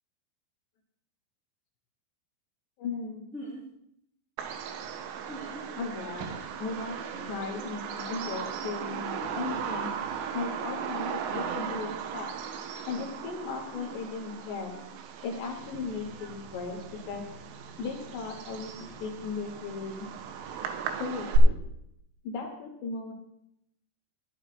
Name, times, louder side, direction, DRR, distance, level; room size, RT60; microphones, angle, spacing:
voice 1, 2.8-3.4 5.7-6.3 6.6-7.0 7.3-9.9 10.3-12.3 12.9-14.8 15.2-16.8 17.1-17.2 17.8-20.1 21.0-21.6 22.2-23.1, left 4 dB, 65° left, 0 dB, 3.1 m, -36 dB
sound 1, 3.3-3.6 5.3-5.7 7.1-7.4 9.1-9.4 11.3-11.6 13.7-14.0, equal, 15° right, 3.2 m, -42 dB
Bird vocalization bird call bird song, 4.4-21.4, right 7 dB, 85° right, 3.4 m, -36 dB
16.5 x 11.0 x 2.5 m, 0.76 s
omnidirectional pair, 6.0 m